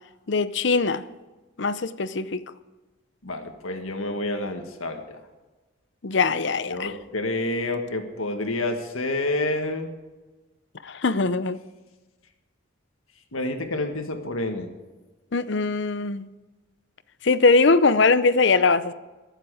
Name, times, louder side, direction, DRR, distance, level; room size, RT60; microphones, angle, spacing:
voice 1, 0.3-1.0 1.6-2.4 6.0-6.9 10.8-11.6 15.3-16.3 17.2-18.9, left 4 dB, 60° left, 14 dB, 0.6 m, -21 dB
voice 2, 3.2-5.2 6.7-9.9 13.3-14.7, left 2 dB, 85° left, 5 dB, 1.7 m, -28 dB
22.5 x 7.5 x 4.9 m, 1.2 s
head